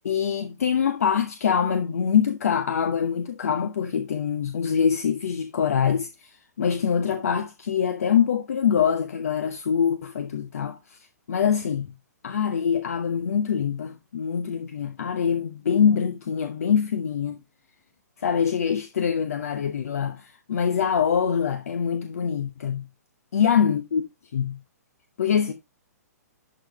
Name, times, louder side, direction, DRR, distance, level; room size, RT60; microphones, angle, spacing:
voice 1, 0.0-11.0 11.3-11.9 12.2-17.4 18.2-22.8 23.3-24.0 24.3-24.6 25.2-25.5, left 7 dB, 60° left, 0.9 m, -24 dB
11.5 x 4.9 x 3.1 m
figure-of-eight pair, 120°, 9 cm